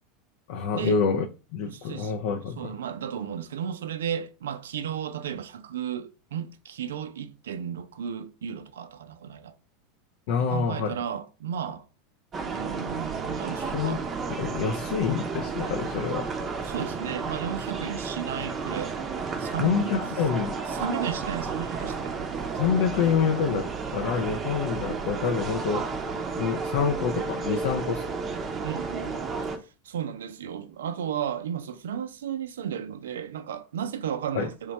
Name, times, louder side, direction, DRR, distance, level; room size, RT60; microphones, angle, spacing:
voice 1, 0.5-1.3 1.5-2.8 10.3-11.0 13.6-14.0 14.4-16.4 19.6-20.6 22.5-28.0 34.3-34.5, left 6 dB, 65° left, 0.4 m, -27 dB
voice 2, 1.7-2.1 2.6-9.5 10.4-11.9 12.4-14.0 16.6-19.0 19.3-19.9 20.7-22.2 28.6-29.3 29.8-34.7, right 8 dB, 80° right, 0.4 m, -34 dB
sound 1, 12.3-29.6, right 4 dB, 30° right, 0.5 m, -32 dB
3.2 x 2.2 x 4.0 m
hypercardioid pair, 95°, 0 cm